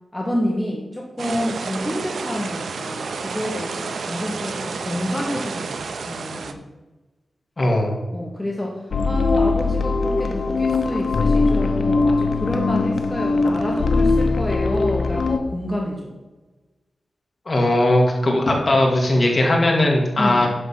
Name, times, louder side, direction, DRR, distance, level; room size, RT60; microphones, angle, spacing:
voice 1, 0.1-6.6 8.1-16.1 20.2-20.5, left 1 dB, 10° left, -2 dB, 1.5 m, -28 dB
sound 1, 1.2-6.5, right 4 dB, 80° right, 0.7 m, -30 dB
voice 2, 7.6-7.9 17.5-20.5, left 1 dB, 35° left, 0 dB, 2.4 m, -18 dB
sound 2, 8.9-15.4, left 3 dB, 70° left, 0.9 m, -20 dB
11.0 x 4.0 x 7.6 m, 1.2 s
wide cardioid pair, 90°, 0 cm